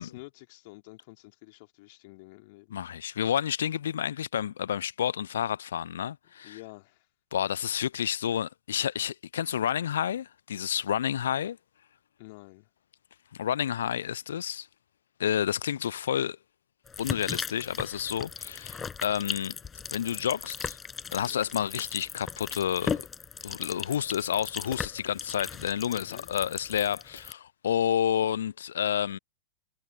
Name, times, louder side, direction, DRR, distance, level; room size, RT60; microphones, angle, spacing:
voice 1, 0.0-2.8 6.4-7.0 12.2-12.7 21.2-21.5 25.9-26.3, left 25 dB, 50° left, 3.6 m, -49 dB
voice 2, 2.7-6.6 7.3-11.6 13.3-14.7 15.2-16.4 17.0-19.5 19.9-20.8 21.1-23.0 23.4-29.2, left 9 dB, 65° left, 0.7 m, -30 dB
sound 1, 16.9-27.3, left 6 dB, 20° left, 5.2 m, -38 dB
figure-of-eight pair, 90°, 0 cm